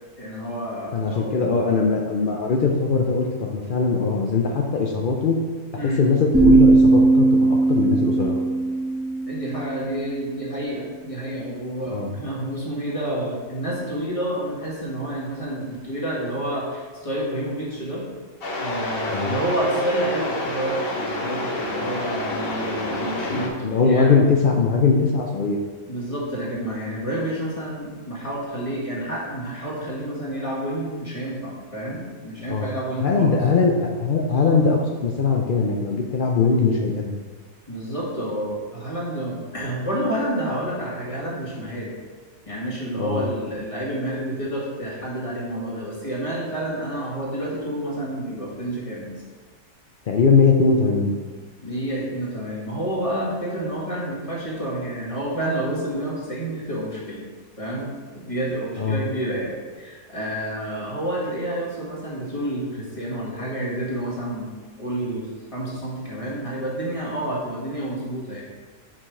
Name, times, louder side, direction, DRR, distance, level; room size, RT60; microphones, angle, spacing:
voice 1, 0.2-1.3 5.8-6.0 9.2-18.0 18.5-24.2 25.9-33.4 37.7-42.0 42.5-49.2 51.6-57.2 57.6-64.5 64.8-68.4, right 1 dB, 20° left, -6 dB, 1.7 m, -29 dB
voice 2, 0.9-5.4 5.8-8.3 11.9-12.1 19.1-19.3 23.3-25.6 32.5-32.7 33.0-37.1 43.0-43.2 50.1-51.1 58.8-59.0, left 4 dB, 85° left, 1 dB, 0.4 m, -21 dB
sound 1, 6.3-10.2, right 3 dB, 10° right, 0.9 m, -18 dB
sound 2, 18.4-23.5, left 2 dB, 45° left, 0.9 m, -28 dB
5.8 x 4.9 x 4.9 m, 1.4 s
omnidirectional pair, 1.6 m